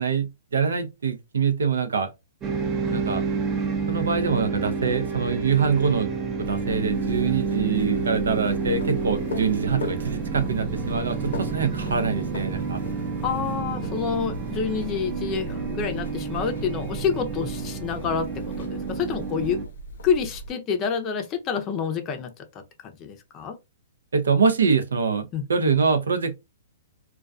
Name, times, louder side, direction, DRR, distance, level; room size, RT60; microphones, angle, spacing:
voice 1, 0.0-2.1 2.9-3.2 3.9-6.1 6.4-12.8 24.1-26.4, right 5 dB, 90° right, 0.5 m, -24 dB
sound 1, 2.4-19.6, right 5 dB, 20° right, 0.6 m, -30 dB
sound 2, 6.4-20.5, right 1 dB, 80° left, 0.6 m, -37 dB
voice 2, 13.2-19.6 20.0-22.4 23.0-23.6 25.3-25.8, left 6 dB, 25° left, 0.5 m, -28 dB
2.2 x 2.2 x 2.5 m
hypercardioid pair, 140°, 0 cm